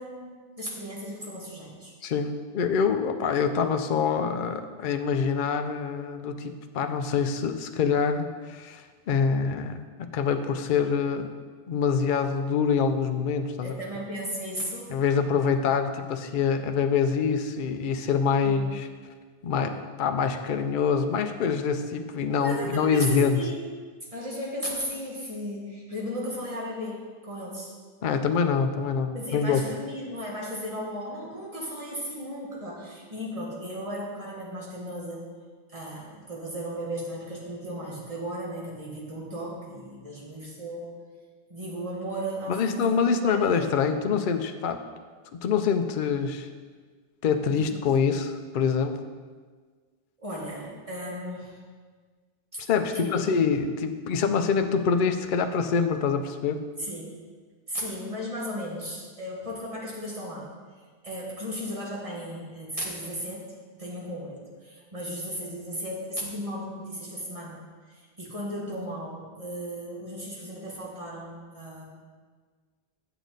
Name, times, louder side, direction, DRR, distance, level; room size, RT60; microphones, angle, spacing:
voice 1, 0.0-1.9 13.6-15.0 18.4-18.7 22.4-23.6 24.1-27.7 29.1-35.3 35.7-40.9 41.5-43.6 47.5-47.8 50.2-51.6 52.5-52.6 52.9-53.2 56.8-57.1 57.7-60.5 61.0-63.5 63.7-67.6 67.9-71.8, equal, 35° right, -4 dB, 1.9 m, -35 dB
voice 2, 2.0-11.4 11.7-13.7 14.9-18.9 19.4-23.5 28.0-29.6 42.5-44.8 45.3-46.5 47.2-49.0 52.7-56.6, left 6 dB, 60° left, 7 dB, 0.7 m, -25 dB
8.2 x 8.0 x 3.9 m, 1.5 s
omnidirectional pair, 1.0 m